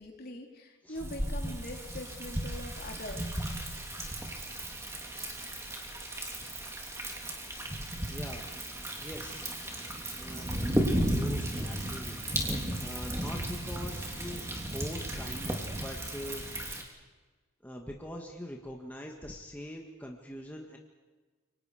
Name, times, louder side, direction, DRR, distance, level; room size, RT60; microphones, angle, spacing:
voice 1, 0.0-3.4, left 1 dB, 45° left, 2 dB, 3.4 m, -43 dB
Thunder, 1.0-16.8, right 1 dB, 15° right, 3.2 m, -35 dB
voice 2, 8.1-8.5 9.0-9.5 10.2-14.4 14.7-16.4 17.6-20.8, equal, 10° left, 0 dB, 1.7 m, -43 dB
28.5 x 24.0 x 5.0 m, 1.3 s
head